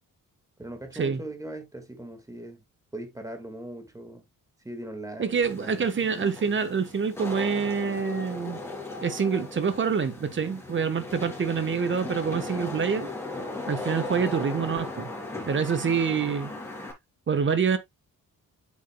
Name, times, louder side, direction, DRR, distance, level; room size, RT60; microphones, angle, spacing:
voice 1, 0.6-2.6 2.9-4.2 4.6-5.9, right 1 dB, 10° right, 1.7 m, -40 dB
voice 2, 5.2-8.6 9.0-13.1 13.7-15.1 15.5-16.5 17.3-17.8, right 6 dB, 35° right, 1.1 m, -26 dB
Wind / Rain, 5.4-16.9, left 2 dB, 10° left, 3.1 m, -37 dB
8.5 x 7.3 x 2.2 m
wide cardioid pair, 170°, 34 cm